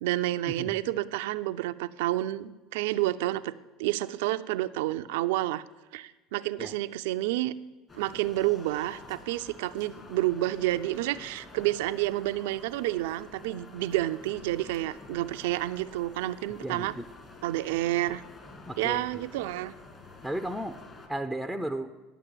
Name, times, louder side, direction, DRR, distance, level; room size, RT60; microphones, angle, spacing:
voice 1, 0.0-3.5 3.8-5.6 5.9-7.5 7.9-16.9 17.4-18.2 18.8-19.7, right 16 dB, 75° right, 13 dB, 0.4 m, -29 dB
sound 1, 7.9-21.1, left 3 dB, 30° left, 2.1 m, -49 dB
voice 2, 16.6-17.1 18.7-19.2 20.2-20.8 21.1-21.9, right 1 dB, 5° left, 8 dB, 0.6 m, -34 dB
10.0 x 6.5 x 7.6 m, 1.2 s
hypercardioid pair, 80°, 0 cm